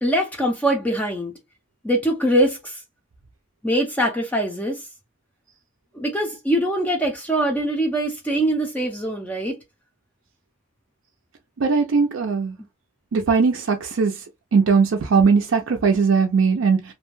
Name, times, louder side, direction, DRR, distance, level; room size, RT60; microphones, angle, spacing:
voice 1, 0.0-1.3 1.8-2.8 3.6-4.8 5.9-9.6, right 1 dB, 5° left, 0.4 m, -23 dB
voice 2, 11.6-12.5 13.1-14.1 14.5-16.8, right 5 dB, 75° right, 0.4 m, -19 dB
2.5 x 2.1 x 3.0 m
head